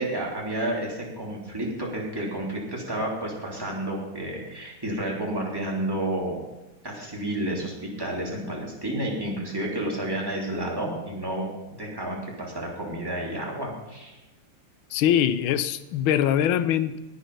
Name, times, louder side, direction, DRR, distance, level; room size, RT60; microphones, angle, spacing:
voice 1, 0.0-6.4 6.8-7.7 8.0-11.5 11.8-14.2, right 1 dB, 10° right, -3 dB, 3.2 m, -30 dB
voice 2, 14.9-17.0, left 10 dB, 75° left, 13 dB, 1.5 m, -23 dB
19.5 x 6.8 x 5.5 m, 1.0 s
omnidirectional pair, 2.4 m